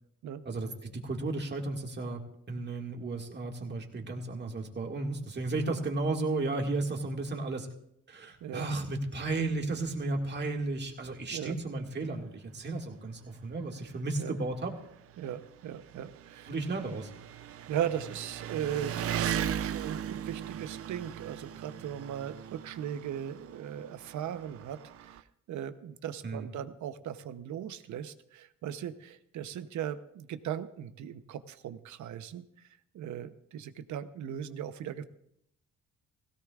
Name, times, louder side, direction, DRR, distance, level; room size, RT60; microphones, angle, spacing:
voice 1, 0.5-2.2 2.5-7.7 8.1-14.7 16.5-17.1 26.2-26.5, right 3 dB, 35° right, 2 dB, 2.1 m, -34 dB
Engine, 10.6-10.7 11.1-11.2 12.2-12.3 12.5-25.2, right 9 dB, 50° right, 0.6 m, -39 dB
voice 2, 15.2-16.5 17.7-32.7 32.9-35.0, right 9 dB, 70° right, 11 dB, 0.9 m, -38 dB
16.5 x 16.5 x 2.5 m, 0.74 s
cardioid pair, 90°, 30 cm